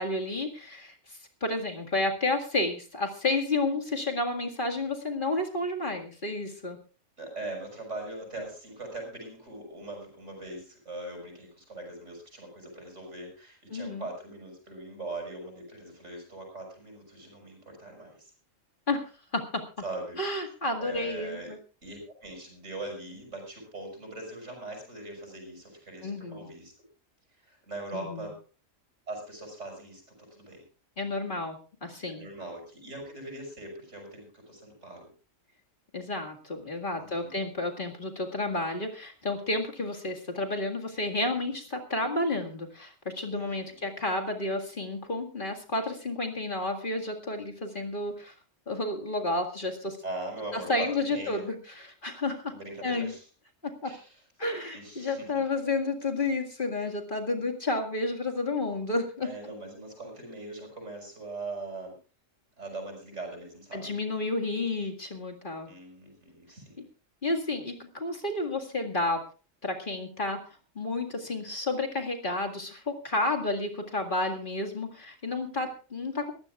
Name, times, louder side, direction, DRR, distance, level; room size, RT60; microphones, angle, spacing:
voice 1, 0.0-6.8 13.7-14.1 18.9-19.0 19.3-19.6 20.2-21.6 26.0-26.5 27.9-28.3 31.0-31.6 31.8-32.3 35.9-48.3 48.7-50.0 50.5-52.5 52.8-53.1 53.6-53.9 54.4-59.3 63.7-65.7 67.2-69.2 69.6-70.4 70.8-76.3, left 2 dB, 40° left, 2 dB, 2.2 m, -31 dB
voice 2, 7.2-18.3 19.8-20.2 20.8-21.5 21.8-26.7 27.4-28.4 29.1-30.6 32.1-35.1 37.0-37.4 43.3-43.8 50.0-51.5 52.5-53.3 53.8-54.2 54.7-55.4 59.2-62.0 62.6-64.0 65.7-66.8, right 2 dB, 65° right, 3 dB, 6.8 m, -41 dB
23.0 x 15.0 x 2.4 m, 0.35 s
omnidirectional pair, 1.3 m